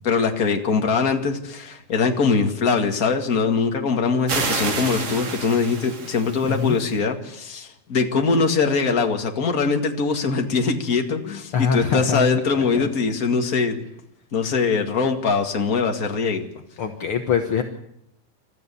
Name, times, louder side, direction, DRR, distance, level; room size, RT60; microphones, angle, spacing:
voice 1, 0.0-13.8 14.3-16.5, left 5 dB, 30° left, 4 dB, 1.7 m, -22 dB
sound 1, 4.3-6.9, right 4 dB, 45° right, 3.5 m, -29 dB
voice 2, 11.5-12.3 16.8-17.6, left 7 dB, 65° left, 5 dB, 1.4 m, -23 dB
28.5 x 14.0 x 7.0 m, 0.76 s
omnidirectional pair, 4.1 m